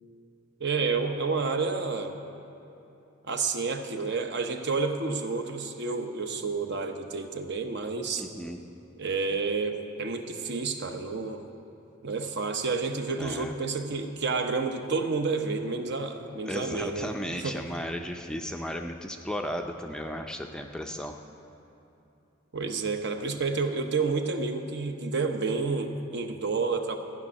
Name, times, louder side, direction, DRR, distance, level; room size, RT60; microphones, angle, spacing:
voice 1, 0.6-2.2 3.2-8.2 9.0-11.4 12.0-17.6 22.5-27.0, right 4 dB, 55° right, 6 dB, 0.9 m, -30 dB
voice 2, 8.2-8.6 13.2-13.5 16.5-21.2, equal, 5° left, 4 dB, 0.4 m, -35 dB
14.5 x 6.2 x 9.7 m, 2.9 s
head